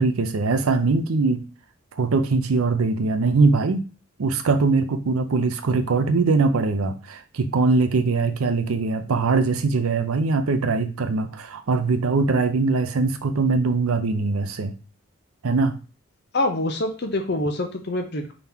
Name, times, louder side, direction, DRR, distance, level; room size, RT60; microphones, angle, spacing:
voice 1, 0.0-1.4 2.0-3.8 4.2-14.7 15.4-15.8, right 4 dB, 85° right, 9 dB, 0.5 m, -22 dB
voice 2, 16.3-18.3, left 2 dB, 50° left, 5 dB, 0.7 m, -25 dB
3.7 x 2.8 x 3.5 m, 0.34 s
head